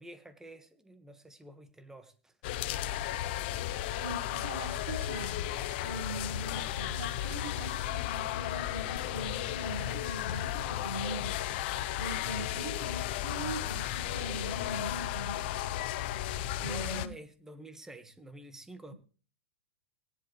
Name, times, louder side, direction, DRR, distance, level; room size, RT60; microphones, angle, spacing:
voice 1, 0.0-2.4 16.6-18.9, right 1 dB, 5° right, 1.8 m, -48 dB
sound 1, 2.4-17.1, left 13 dB, 55° left, 0.9 m, -34 dB
voice 2, 4.0-5.5 5.8-11.4 12.0-15.4 16.6-17.2, right 2 dB, 70° right, 5.6 m, -41 dB
sound 2, 10.4-16.4, left 9 dB, 85° left, 0.7 m, -50 dB
18.0 x 11.0 x 3.4 m
hypercardioid pair, 120°, 7 cm